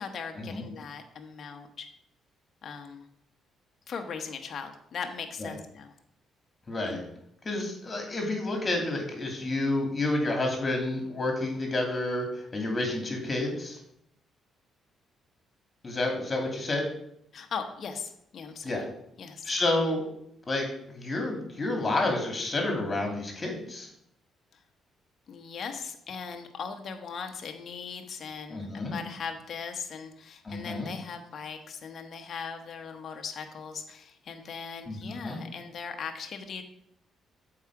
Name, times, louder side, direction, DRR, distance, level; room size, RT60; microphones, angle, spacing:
voice 1, 0.0-1.9 2.6-3.0 3.9-5.9 6.8-7.0 17.3-18.8 19.2-19.5 24.5-24.6 25.3-36.6, left 6 dB, 55° left, 5 dB, 0.9 m, -39 dB
voice 2, 6.7-7.0 7.4-13.8 15.8-16.9 18.6-18.9 19.4-20.1 20.5-23.9 28.5-29.0 30.4-30.9 34.9-35.4, left 2 dB, 30° left, 2 dB, 2.5 m, -30 dB
7.3 x 4.8 x 4.7 m, 0.73 s
cardioid pair, 90°, 0 cm